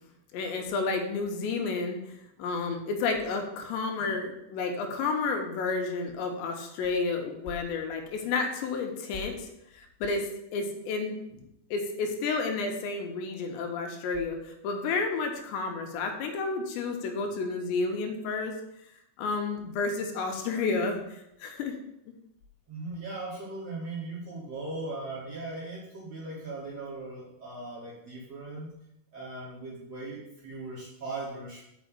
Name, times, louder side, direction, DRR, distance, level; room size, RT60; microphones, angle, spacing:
voice 1, 0.3-2.1 2.4-9.5 9.7-11.2 11.7-18.6 19.2-21.8, left 4 dB, 75° left, 3 dB, 3.1 m, -31 dB
voice 2, 22.7-28.7 29.1-31.6, right 2 dB, 45° right, -7 dB, 2.2 m, -39 dB
6.2 x 6.2 x 7.1 m, 0.82 s
omnidirectional pair, 5.4 m